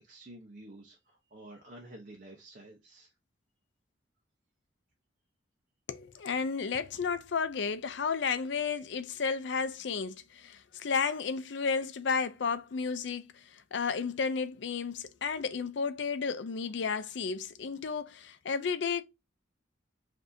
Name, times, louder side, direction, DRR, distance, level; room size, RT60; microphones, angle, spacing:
voice 1, 0.0-3.1, right 1 dB, 45° right, 0.7 m, -50 dB
voice 2, 5.9-13.4 13.7-19.0, left 5 dB, 60° left, 0.4 m, -32 dB
7.0 x 2.7 x 2.6 m
head